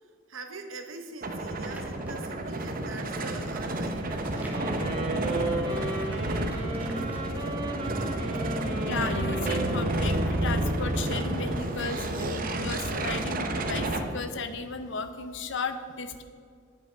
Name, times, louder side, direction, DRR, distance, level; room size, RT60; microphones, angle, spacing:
voice 1, 0.0-5.0 11.7-12.2, right 3 dB, 85° right, 5 dB, 1.0 m, -44 dB
sound 1, 1.2-14.0, right 1 dB, 45° right, 0.8 m, -30 dB
sound 2, 1.5-2.4 3.0-5.4 5.7-7.7, right 2 dB, 10° right, 1.0 m, -50 dB
Wind instrument woodwind instrument, 4.3-11.5, right 2 dB, 25° right, 1.7 m, -34 dB
voice 2, 8.8-16.2, left 4 dB, 65° left, 9 dB, 0.7 m, -35 dB
8.5 x 7.9 x 4.5 m, 2.2 s
head